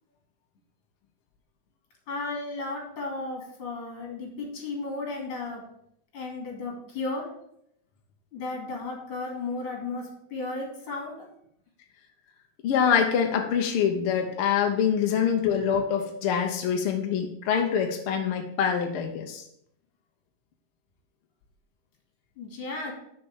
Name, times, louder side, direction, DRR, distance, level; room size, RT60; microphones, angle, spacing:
voice 1, 2.1-5.6 6.1-7.3 8.3-11.3 22.4-22.9, left 3 dB, 50° left, 0 dB, 3.2 m, -34 dB
voice 2, 12.6-19.4, left 7 dB, 70° left, 4 dB, 1.3 m, -25 dB
6.4 x 5.8 x 7.2 m, 0.73 s
omnidirectional pair, 3.3 m